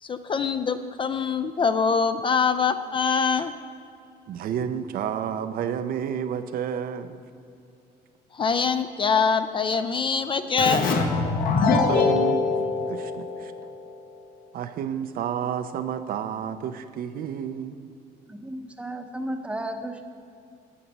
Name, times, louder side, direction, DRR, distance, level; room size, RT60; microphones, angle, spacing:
voice 1, 0.0-3.5 8.3-10.9 11.7-11.8, left 5 dB, 30° left, 10 dB, 0.4 m, -24 dB
voice 2, 4.3-7.2 11.8-12.4 12.9-13.5 14.5-17.8, right 8 dB, 60° right, 10 dB, 0.5 m, -30 dB
Keyboard (musical), 10.6-14.0, left 4 dB, 55° left, 1.0 m, -23 dB
voice 3, 18.3-20.1, right 1 dB, 5° right, 6 dB, 0.7 m, -34 dB
8.6 x 8.0 x 5.4 m, 2.5 s
cardioid pair, 110°, 17 cm